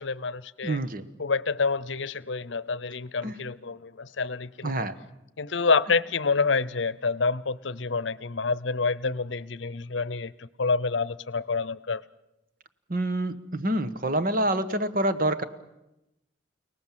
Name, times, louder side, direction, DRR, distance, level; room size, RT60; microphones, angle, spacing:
voice 1, 0.0-0.8 1.2-4.9 5.4-12.0, left 4 dB, 70° left, 0.8 m, -28 dB
voice 2, 0.6-1.1 3.2-3.3 4.6-5.0 12.9-15.4, right 1 dB, 45° right, 1.3 m, -27 dB
30.0 x 18.5 x 7.5 m
head